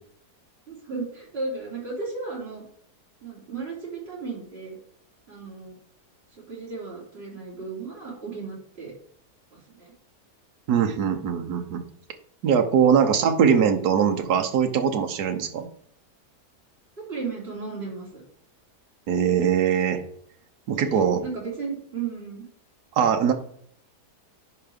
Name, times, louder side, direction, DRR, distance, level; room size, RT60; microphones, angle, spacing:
voice 1, 0.7-2.6 3.2-4.8 5.3-5.7 6.4-8.9 9.5-9.9 12.8-12.9 17.0-18.2 20.8-22.4, right 4 dB, 35° right, -6 dB, 4.2 m, -35 dB
voice 2, 10.7-11.8 12.4-15.7 19.1-20.0 20.7-21.2 23.0-23.3, right 7 dB, 75° right, 6 dB, 1.5 m, -21 dB
10.5 x 3.9 x 5.2 m, 0.64 s
omnidirectional pair, 1.7 m